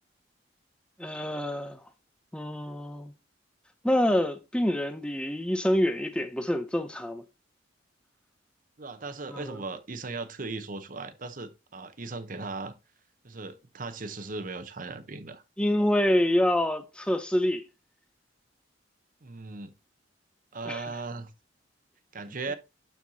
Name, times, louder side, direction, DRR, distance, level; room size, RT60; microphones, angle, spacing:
voice 1, 1.0-1.9 2.3-3.1 3.8-7.2 9.3-9.6 15.6-17.6 20.6-20.9, left 1 dB, 5° left, 0.5 m, -26 dB
voice 2, 8.8-12.7 13.2-15.4 19.2-19.7 20.5-21.3 22.1-22.5, right 3 dB, 45° right, 0.8 m, -37 dB
12.0 x 4.5 x 2.7 m
head